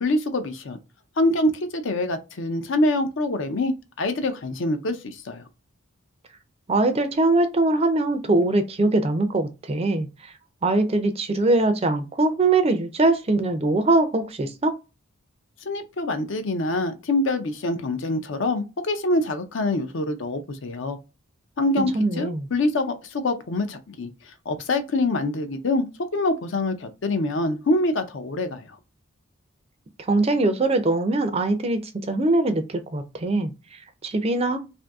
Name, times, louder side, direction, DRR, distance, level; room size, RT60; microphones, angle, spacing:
voice 1, 0.0-0.8 1.2-3.7 4.0-5.4 15.6-21.0 21.6-24.1 24.5-25.9 26.1-28.7, left 2 dB, 60° left, 0.5 m, -25 dB
voice 2, 6.7-10.3 10.6-14.7 21.9-22.5 30.0-34.6, right 2 dB, 30° right, 0.4 m, -22 dB
2.6 x 2.6 x 3.4 m
head